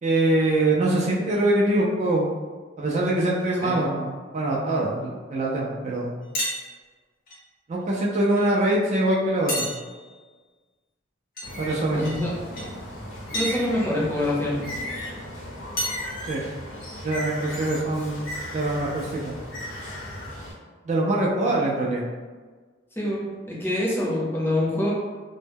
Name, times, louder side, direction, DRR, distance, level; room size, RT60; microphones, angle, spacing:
voice 1, 0.0-2.3 2.8-6.1 7.7-9.7 11.6-12.2 16.2-16.4 17.0-18.2 18.5-19.4 20.9-22.0, right 1 dB, 35° right, -3 dB, 0.3 m, -23 dB
sound 1, 6.3-6.7 7.3-7.4 8.4-8.5 9.5-10.2 11.4-11.5 12.0-12.2 12.5-12.7 13.3-13.6 15.0-15.1 15.8-16.1, equal, 50° left, 0.7 m, -30 dB
Bird, 11.4-20.5, left 1 dB, 85° left, 0.7 m, -36 dB
voice 2, 11.9-12.3 13.3-14.7 23.0-24.9, left 1 dB, 10° left, -6 dB, 0.6 m, -25 dB
2.1 x 2.0 x 3.3 m, 1.4 s
head